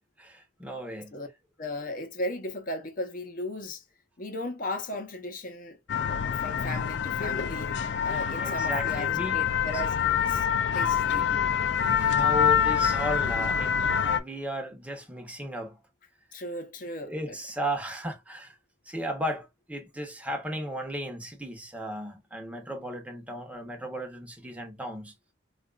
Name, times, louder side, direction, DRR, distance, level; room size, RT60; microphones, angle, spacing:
voice 1, 0.2-1.2 8.3-9.4 9.7-9.8 10.7-10.8 11.1-11.3 11.8-15.8 17.0-18.6 18.9-25.1, equal, 10° right, 0.8 m, -35 dB
voice 2, 1.6-3.8 4.2-5.8 6.0-7.7 8.0-11.5 16.3-17.4, left 1 dB, 50° left, 0.8 m, -36 dB
sound 1, 5.9-14.2, left 8 dB, 75° left, 0.4 m, -26 dB
4.0 x 2.4 x 2.4 m
head